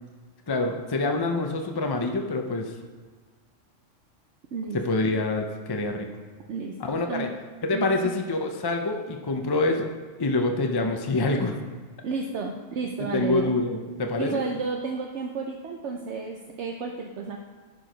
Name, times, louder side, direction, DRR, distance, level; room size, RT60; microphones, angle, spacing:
voice 1, 0.5-2.7 4.8-6.1 6.8-7.3 7.6-9.9 10.2-11.6 13.1-14.4, left 2 dB, 25° left, 4 dB, 0.6 m, -26 dB
voice 2, 7.7-8.1 12.0-13.5 14.2-17.4, right 4 dB, 70° right, 2 dB, 1.0 m, -32 dB
10.5 x 4.7 x 5.2 m, 1.5 s
omnidirectional pair, 1.3 m